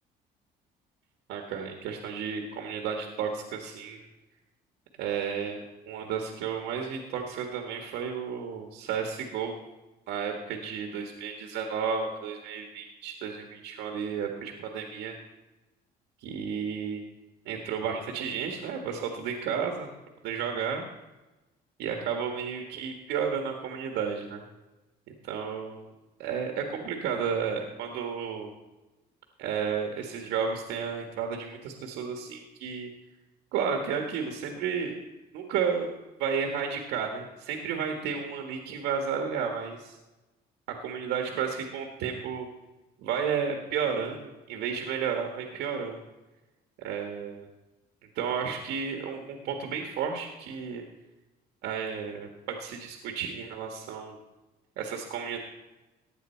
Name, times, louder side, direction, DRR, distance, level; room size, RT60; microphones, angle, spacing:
voice 1, 1.3-4.0 5.0-9.6 10.1-15.2 16.2-17.0 17.4-19.9 20.2-20.8 21.8-24.4 25.2-25.9 26.2-28.5 29.4-32.9 33.5-34.9 35.3-35.9 36.2-40.0 40.8-42.5 43.0-46.0 46.8-47.5 48.1-50.8 51.6-54.2 54.8-55.4, right 6 dB, 90° right, 4 dB, 1.5 m, -32 dB
16.0 x 9.8 x 4.4 m, 1.1 s
cardioid pair, 110°, 17 cm